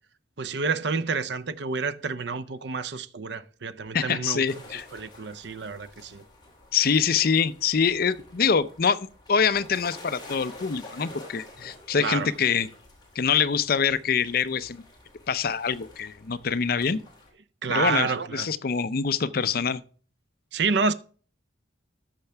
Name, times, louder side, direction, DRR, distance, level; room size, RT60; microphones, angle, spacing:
voice 1, 0.4-4.4 4.9-6.2 12.0-12.3 17.6-18.5 20.5-20.9, right 4 dB, 60° right, 0.6 m, -28 dB
voice 2, 3.9-4.9 6.7-12.7 13.2-14.8 15.3-17.0 17.7-19.8, left 6 dB, 50° left, 0.5 m, -25 dB
sound 1, 4.5-17.3, left 2 dB, 20° left, 2.8 m, -49 dB
13.5 x 5.7 x 3.4 m
head